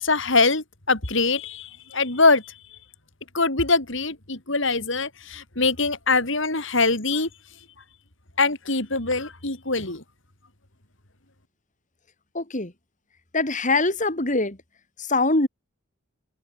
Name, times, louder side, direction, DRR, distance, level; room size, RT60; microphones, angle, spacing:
voice 1, 0.0-2.5 3.3-7.3 8.4-10.0, left 3 dB, 60° left, 4.1 m, -23 dB
voice 2, 12.3-12.7 13.3-14.6 15.1-15.5, left 2 dB, 35° left, 2.9 m, -23 dB
head